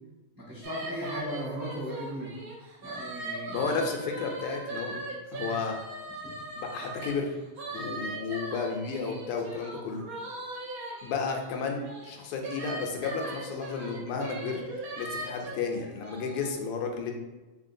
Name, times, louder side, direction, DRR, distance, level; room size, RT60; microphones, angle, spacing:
voice 1, 0.3-2.4 2.8-3.7 6.2-6.3, equal, 15° right, -9 dB, 1.0 m, -37 dB
sound 1, 0.6-7.1 7.6-16.5, right 2 dB, 55° right, 1.0 m, -39 dB
voice 2, 3.5-5.0 5.3-5.8 6.6-7.3 7.7-10.1 11.0-14.6 15.0-17.1, left 5 dB, 90° left, 2 dB, 1.6 m, -32 dB
4.0 x 3.6 x 2.6 m, 1.2 s
omnidirectional pair, 2.4 m